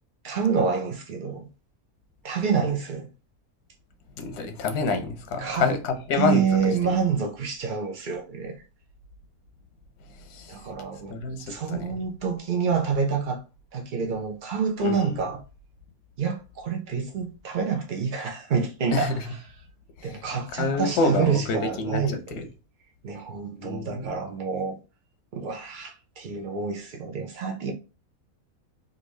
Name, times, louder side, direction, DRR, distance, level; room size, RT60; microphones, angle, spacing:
voice 1, 0.2-1.5 2.2-3.1 5.4-5.7 6.1-8.6 10.5-11.2 11.5-13.4 13.7-15.4 16.2-19.1 20.0-22.2 23.0-24.7 25.3-27.7, right 6 dB, 80° right, 0.4 m, -27 dB
voice 2, 4.2-7.0 10.1-10.7 11.1-12.0 14.8-15.2 18.9-19.2 20.0-22.5 23.6-24.2, left 3 dB, 90° left, 1.2 m, -28 dB
3.5 x 2.6 x 3.1 m
omnidirectional pair, 1.6 m